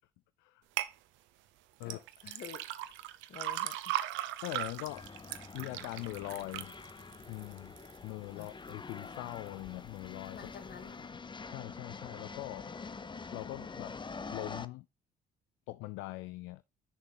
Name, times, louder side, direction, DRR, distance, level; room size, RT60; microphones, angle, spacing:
sound 1, 0.8-0.9 1.8-8.0 8.4-8.9 9.4-9.5, right 13 dB, 75° right, 0.7 m, -38 dB
voice 1, 1.8-2.6 3.3-4.1 8.3-8.5 10.3-11.2, left 7 dB, 55° left, 1.7 m, -49 dB
voice 2, 4.4-5.1 5.5-6.7 7.3-7.8 8.0-10.5 11.4-12.7 13.3-14.0 14.3-14.9 15.7-16.6, left 19 dB, 75° left, 0.4 m, -42 dB
sound 2, 4.5-14.7, left 4 dB, 25° left, 0.7 m, -46 dB
6.8 x 6.6 x 3.4 m
hypercardioid pair, 55°, 20 cm